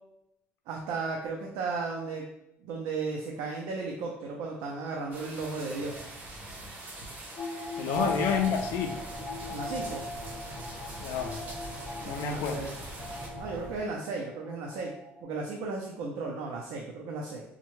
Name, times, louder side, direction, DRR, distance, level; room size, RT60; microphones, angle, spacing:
voice 1, 0.7-2.3 2.6-5.9 7.9-8.1 9.5-10.0 12.0-12.7 13.4-14.9 15.2-17.4, right 4 dB, 80° right, -1 dB, 0.5 m, -35 dB
sound 1, 5.1-13.3, right 2 dB, 40° right, 0.7 m, -44 dB
sound 2, 7.4-15.2, left 1 dB, 25° left, 0.6 m, -39 dB
voice 2, 7.8-9.0 11.0-11.4 12.1-12.6, left 7 dB, 70° left, 4 dB, 0.3 m, -29 dB
sound 3, 7.9-13.8, equal, 15° right, 1.1 m, -44 dB
3.6 x 2.1 x 3.0 m, 0.85 s
cardioid pair, 160°, 4 cm